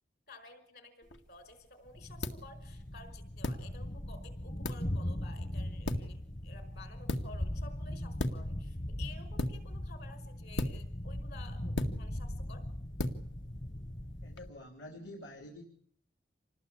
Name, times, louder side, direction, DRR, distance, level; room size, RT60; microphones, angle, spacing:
voice 1, 0.3-12.7, left 3 dB, 55° left, 11 dB, 5.3 m, -53 dB
sound 1, 1.0-14.5, left 1 dB, 90° left, 2.1 m, -40 dB
Thunder, 1.9-14.6, left 1 dB, 35° left, 1.0 m, -40 dB
voice 2, 14.2-15.6, left 1 dB, 70° left, 4 dB, 3.7 m, -48 dB
27.0 x 20.0 x 8.6 m, 0.64 s
head